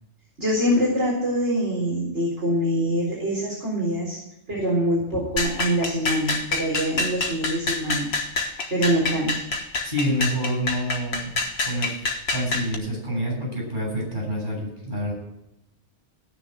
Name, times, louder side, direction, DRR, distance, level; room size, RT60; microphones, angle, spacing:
voice 1, 0.4-4.2 4.5-8.1 8.7-9.3, equal, 80° right, -4 dB, 4.4 m, -24 dB
sound 1, 5.4-12.7, left 3 dB, 65° left, 1.7 m, -27 dB
voice 2, 9.8-11.3 11.6-12.0 12.3-15.1, equal, 45° right, -3 dB, 8.3 m, -27 dB
17.5 x 6.7 x 9.5 m, 0.82 s
omnidirectional pair, 1.2 m